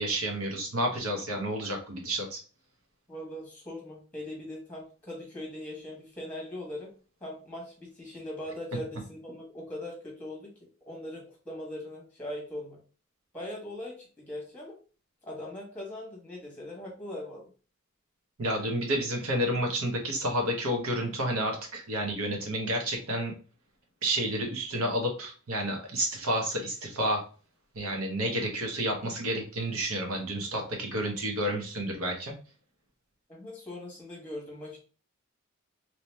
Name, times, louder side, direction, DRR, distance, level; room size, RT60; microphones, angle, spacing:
voice 1, 0.0-2.4 18.4-23.3 24.0-27.2 27.7-32.3, right 1 dB, 85° right, 2 dB, 1.1 m, -30 dB
voice 2, 3.1-6.9 7.2-10.5 10.9-12.8 13.3-14.8 15.2-17.5 33.3-34.8, left 1 dB, 5° left, -2 dB, 1.2 m, -40 dB
3.0 x 2.9 x 3.2 m, 0.38 s
head